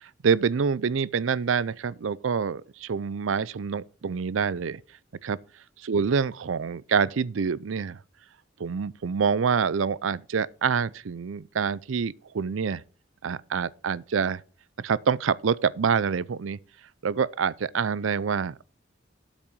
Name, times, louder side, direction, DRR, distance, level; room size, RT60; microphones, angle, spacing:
voice 1, 0.2-4.8 5.2-5.4 5.8-8.0 8.6-12.8 13.2-14.4 14.8-16.6 17.0-18.7, right 6 dB, 85° right, 0.5 m, -26 dB
8.4 x 6.0 x 6.1 m
head